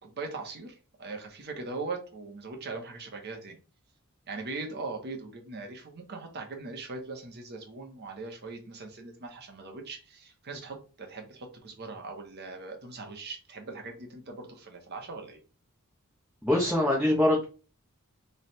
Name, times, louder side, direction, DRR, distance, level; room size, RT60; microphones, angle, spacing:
voice 1, 0.0-3.6 4.3-15.4, right 3 dB, 45° right, 3 dB, 0.9 m, -40 dB
voice 2, 16.4-17.4, left 1 dB, 5° right, -3 dB, 0.7 m, -23 dB
3.2 x 2.3 x 4.2 m, 0.35 s
head